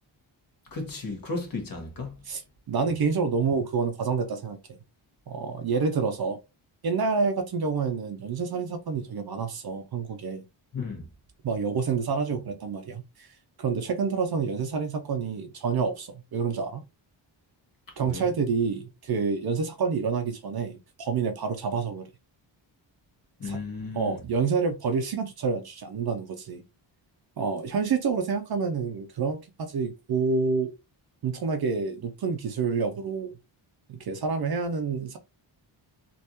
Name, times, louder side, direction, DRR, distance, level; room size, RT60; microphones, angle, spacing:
voice 1, 0.7-2.2 10.7-11.1 18.0-18.3 23.4-24.2, left 3 dB, 45° left, 1.3 m, -34 dB
voice 2, 2.7-4.6 5.3-6.4 6.8-10.4 11.4-13.3 13.6-16.8 18.0-22.1 23.4-23.6 23.9-26.6 27.4-30.7 31.2-33.3 33.9-35.2, right 5 dB, 50° right, 0.6 m, -28 dB
3.4 x 2.5 x 2.8 m
wide cardioid pair, 120°, 48 cm